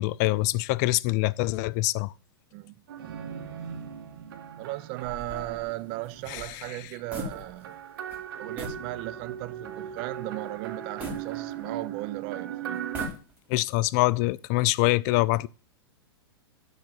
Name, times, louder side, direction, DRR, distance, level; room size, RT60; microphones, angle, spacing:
voice 1, 0.0-2.1 6.3-6.5 13.5-15.5, left 20 dB, 40° left, 0.4 m, -24 dB
sound 1, 2.9-6.5 7.3-13.1, right 9 dB, 60° right, 1.6 m, -38 dB
voice 2, 4.6-7.8 8.4-12.9, right 18 dB, 40° right, 0.6 m, -36 dB
sound 2, 5.0-7.8 8.1-8.2 8.6-8.9 9.4-9.5 11.0-12.0 12.7-13.6, equal, 10° right, 2.9 m, -40 dB
11.5 x 3.9 x 7.4 m
hypercardioid pair, 110°, 13 cm